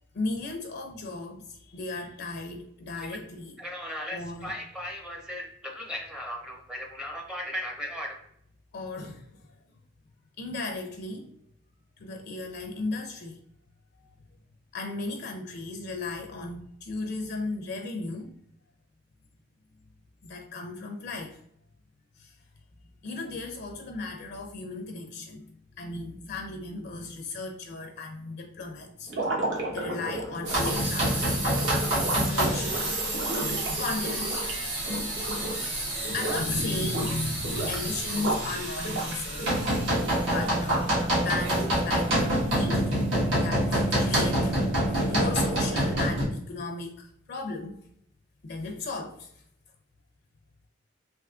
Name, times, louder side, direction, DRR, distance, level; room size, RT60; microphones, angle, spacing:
voice 1, 0.1-3.6 4.0-4.6 8.7-9.5 10.4-11.4 12.0-13.4 13.9-14.1 14.7-18.3 20.2-21.4 22.2-22.4 23.0-39.8 40.0-43.1 43.4-47.8 48.4-49.4, left 3 dB, 55° left, 3 dB, 0.4 m, -36 dB
voice 2, 3.6-8.2, equal, 5° right, 0 dB, 0.5 m, -36 dB
sound 1, 29.1-35.7 36.0-36.5 36.8-38.5 38.8-41.0, right 1 dB, 70° right, 0.9 m, -33 dB
sound 2, 30.4-46.2, right 1 dB, 85° right, 1.5 m, -27 dB
3.4 x 3.0 x 2.3 m, 0.71 s
head